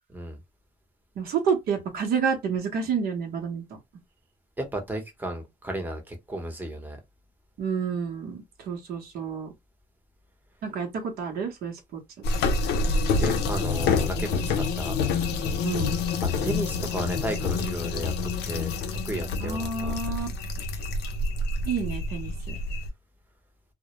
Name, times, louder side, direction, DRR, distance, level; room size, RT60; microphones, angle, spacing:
voice 1, 1.2-3.6 7.6-9.5 10.6-12.0 15.6-16.0 19.4-20.3 21.6-22.6, right 6 dB, 65° right, 0.8 m, -29 dB
voice 2, 4.6-7.0 13.2-15.0 16.2-18.1 18.5-18.7 19.0-20.0 20.8-20.9, right 1 dB, 10° right, 0.8 m, -34 dB
sound 1, 12.2-22.9, left 4 dB, 80° left, 0.5 m, -27 dB
2.1 x 2.1 x 2.8 m
cardioid pair, 110°, 17 cm